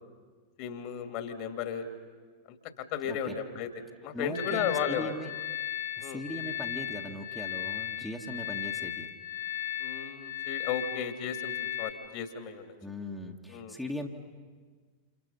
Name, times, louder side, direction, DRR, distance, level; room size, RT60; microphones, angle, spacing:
voice 1, 0.6-1.9 2.5-3.7 4.0-5.1 6.0-6.2 9.8-11.5 11.8-12.7 13.5-13.8, left 8 dB, 45° left, 7 dB, 2.6 m, -34 dB
voice 2, 4.1-5.3 6.0-9.1 12.8-14.1, equal, 5° left, 0 dB, 1.9 m, -39 dB
sound 1, 4.3-11.9, left 12 dB, 60° left, 2.7 m, -36 dB
30.0 x 28.5 x 5.7 m, 1.5 s
figure-of-eight pair, 90°, 0 cm